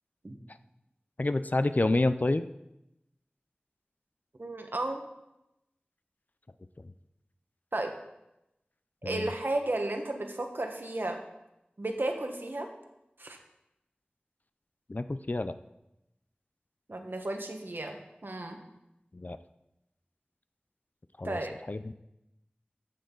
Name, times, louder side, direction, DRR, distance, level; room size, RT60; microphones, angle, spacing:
voice 1, 1.2-2.5 6.8-6.9 9.0-9.3 14.9-15.6 19.1-19.4 21.2-21.4 21.7-22.0, left 2 dB, 50° left, 11 dB, 0.5 m, -29 dB
voice 2, 4.4-5.0 7.7-7.9 9.0-11.2 11.8-12.7 13.2-13.4 16.9-17.9 18.2-18.6 21.2-21.5, right 2 dB, 70° right, 4 dB, 1.3 m, -33 dB
14.5 x 6.3 x 3.9 m, 0.90 s
wide cardioid pair, 40°, 4 cm